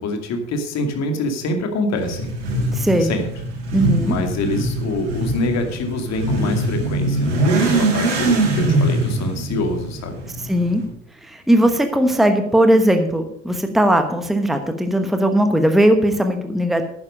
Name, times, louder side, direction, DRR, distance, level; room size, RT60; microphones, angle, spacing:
voice 1, 0.0-2.3 3.0-3.2 4.0-7.3 7.6-10.2, left 2 dB, 50° left, 5 dB, 2.5 m, -25 dB
Motorcycle / Accelerating revving vroom, 2.0-10.8, right 2 dB, 70° right, 4.7 m, -22 dB
voice 2, 2.7-3.1 3.7-4.1 10.5-10.8 11.2-16.8, right 1 dB, ahead, 6 dB, 1.2 m, -18 dB
11.0 x 9.9 x 5.2 m, 0.69 s
hypercardioid pair, 70°, 35 cm